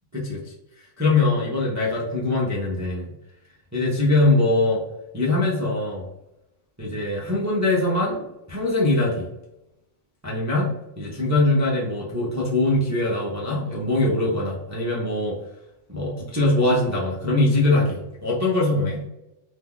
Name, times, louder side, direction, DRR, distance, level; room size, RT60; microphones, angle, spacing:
voice 1, 1.0-3.1 3.7-4.8 5.1-6.0 6.8-9.3 10.2-15.4 15.9-19.0, left 2 dB, 25° right, -5 dB, 0.4 m, -22 dB
2.8 x 2.2 x 3.6 m, 0.90 s
omnidirectional pair, 1.3 m